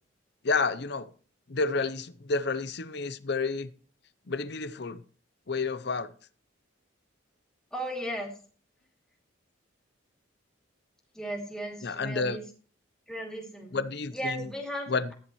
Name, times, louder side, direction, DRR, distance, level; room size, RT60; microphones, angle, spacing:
voice 1, 0.4-1.1 1.5-3.7 4.3-5.0 5.5-6.1 11.8-12.4 13.7-14.4 14.9-15.1, left 4 dB, 55° left, 0.7 m, -30 dB
voice 2, 7.7-8.3 11.1-12.4 13.1-13.8 14.1-15.1, equal, 5° left, 2.6 m, -36 dB
14.0 x 10.5 x 3.1 m
head